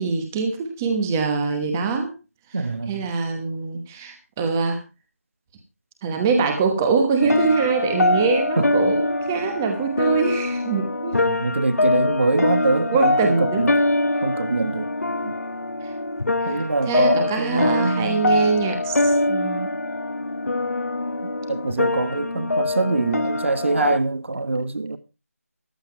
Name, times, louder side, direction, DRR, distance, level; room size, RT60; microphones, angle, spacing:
voice 1, 0.0-2.1 2.9-4.8 6.0-11.2 12.9-13.6 15.8-15.9 16.4-16.5 16.9-19.7, right 4 dB, 10° right, 1.1 m, -23 dB
voice 2, 2.5-3.1 8.6-8.7 11.3-13.7 14.2-14.9 15.2-15.3 16.4-18.5 21.2-25.0, right 3 dB, 50° right, 1.4 m, -24 dB
sound 1, 7.2-24.0, left 2 dB, 70° left, 1.5 m, -24 dB
14.5 x 11.5 x 4.5 m
figure-of-eight pair, 170°, 8 cm